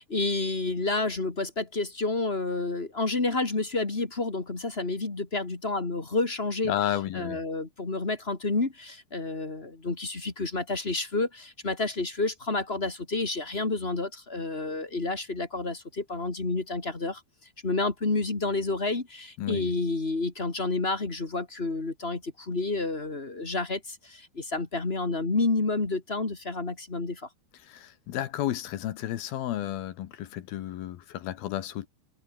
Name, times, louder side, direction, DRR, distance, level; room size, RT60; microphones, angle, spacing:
voice 1, 0.0-17.2 17.6-27.3, left 3 dB, 25° left, 1.5 m, -30 dB
voice 2, 6.7-7.4 19.4-19.7 27.7-31.9, left 12 dB, 70° left, 2.8 m, -32 dB
omnidirectional pair, 4.9 m